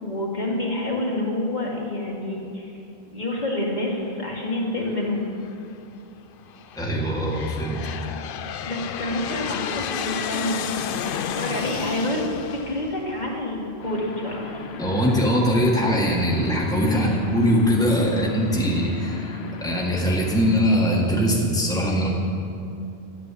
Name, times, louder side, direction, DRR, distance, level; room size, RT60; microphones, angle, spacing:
voice 1, 0.0-2.7 3.1-5.3 8.0-8.1 8.7-14.6 16.8-17.2, left 1 dB, 45° left, -3 dB, 2.1 m, -28 dB
Aircraft, 5.0-5.6 6.3-13.8, left 8 dB, 65° left, 0.7 m, -32 dB
voice 2, 6.7-8.1 14.8-22.1, equal, 5° left, -3 dB, 1.6 m, -22 dB
sound 1, 13.8-20.7, left 3 dB, 85° left, 1.1 m, -36 dB
12.0 x 8.6 x 8.3 m, 2.6 s
omnidirectional pair, 1.0 m